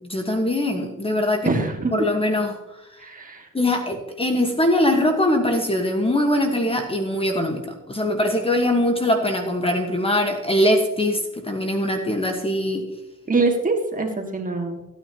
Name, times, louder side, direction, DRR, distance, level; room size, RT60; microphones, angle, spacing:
voice 1, 0.0-1.5 1.9-2.6 3.5-12.8, left 1 dB, 20° left, 4 dB, 1.4 m, -22 dB
voice 2, 1.4-1.9 3.0-3.5 13.3-14.8, right 3 dB, 25° right, 3 dB, 1.9 m, -23 dB
15.0 x 9.3 x 3.0 m, 0.95 s
cardioid pair, 90°, 30 cm